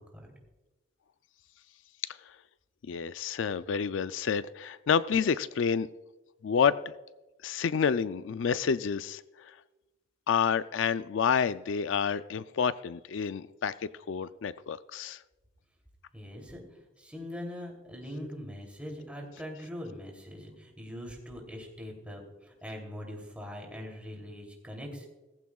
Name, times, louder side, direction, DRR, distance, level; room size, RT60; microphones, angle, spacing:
voice 1, 2.9-5.9 6.4-6.8 7.4-9.5 10.3-13.7 14.1-15.2, left 6 dB, 80° left, 14 dB, 0.4 m, -29 dB
voice 2, 16.1-25.1, left 1 dB, 5° right, 0 dB, 2.9 m, -42 dB
18.0 x 14.5 x 2.4 m, 1.1 s
head